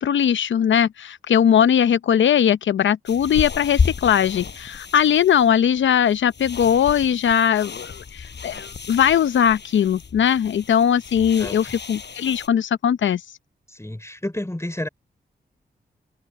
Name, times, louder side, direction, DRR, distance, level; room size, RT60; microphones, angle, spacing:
voice 1, 0.0-13.2, left 9 dB, 85° left, 0.7 m, -19 dB
sound 1, 3.1-12.5, left 5 dB, 65° left, 7.6 m, -32 dB
voice 2, 13.7-14.9, left 1 dB, 15° left, 3.8 m, -30 dB
cardioid pair, 50°, 19 cm